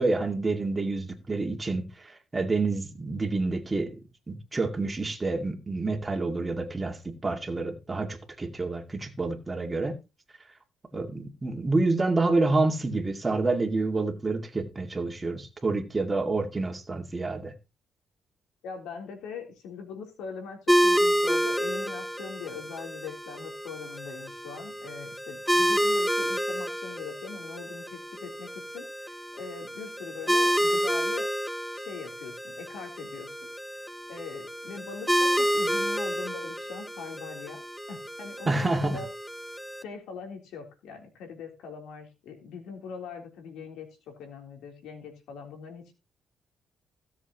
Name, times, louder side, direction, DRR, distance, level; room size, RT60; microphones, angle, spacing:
voice 1, 0.0-3.9 4.3-10.0 10.9-17.5 38.5-39.0, right 3 dB, 20° right, 2.3 m, -28 dB
voice 2, 18.6-31.3 31.7-33.4 34.1-37.6 37.9-39.1 39.8-45.9, left 6 dB, 90° left, 3.6 m, -41 dB
sound 1, 20.7-39.8, equal, ahead, 0.6 m, -29 dB
17.0 x 7.4 x 3.0 m
cardioid pair, 90°, 0 cm